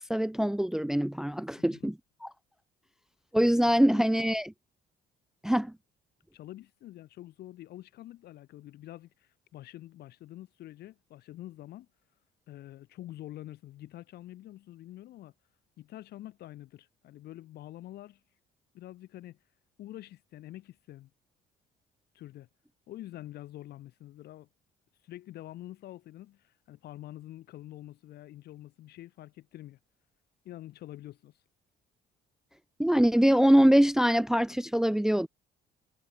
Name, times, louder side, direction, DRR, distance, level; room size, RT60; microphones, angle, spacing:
voice 1, 0.1-1.9 2.2-2.3 3.3-4.5 5.4-5.7 32.8-35.3, equal, 5° right, 0.6 m, -23 dB
voice 2, 6.3-11.9 12.5-15.3 15.8-18.2 18.7-19.4 19.8-21.1 22.1-22.5 22.9-24.5 25.0-29.8 30.4-31.3, left 14 dB, 70° left, 5.5 m, -46 dB
cardioid pair, 110°, 17 cm